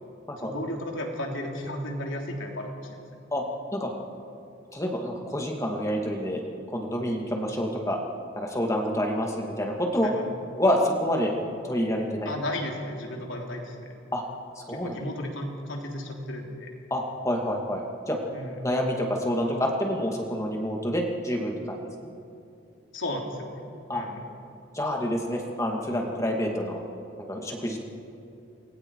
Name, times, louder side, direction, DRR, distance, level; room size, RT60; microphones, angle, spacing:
voice 1, 0.4-3.0 10.0-10.2 12.3-13.9 14.7-16.7 18.3-18.6 22.9-23.7 23.9-24.2, left 1 dB, 80° left, 0 dB, 3.5 m, -34 dB
voice 2, 4.7-6.4 6.7-8.0 8.4-10.1 10.6-11.3 11.6-12.3 14.1-14.2 14.6-15.0 16.9-18.2 18.6-22.1 23.9-24.0 24.7-26.8 27.3-27.8, equal, 15° left, 1 dB, 2.4 m, -28 dB
28.5 x 22.0 x 4.9 m, 2.7 s
head